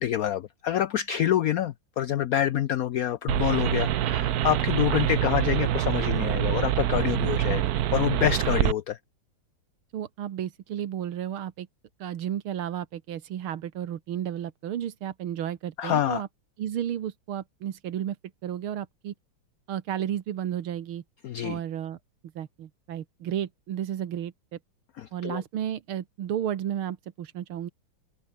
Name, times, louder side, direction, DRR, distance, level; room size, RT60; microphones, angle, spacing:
voice 1, 0.0-7.6 7.9-9.0 15.8-16.2 21.2-21.6 25.0-25.4, left 11 dB, 70° left, 0.8 m, -27 dB
sound 1, 3.3-8.7, right 12 dB, 60° right, 1.0 m, -25 dB
voice 2, 9.9-11.7 12.0-16.3 16.6-18.2 18.4-19.1 19.7-21.0 21.4-22.0 22.4-24.3 25.1-27.7, right 10 dB, 90° right, 2.1 m, -32 dB
open air
omnidirectional pair, 2.3 m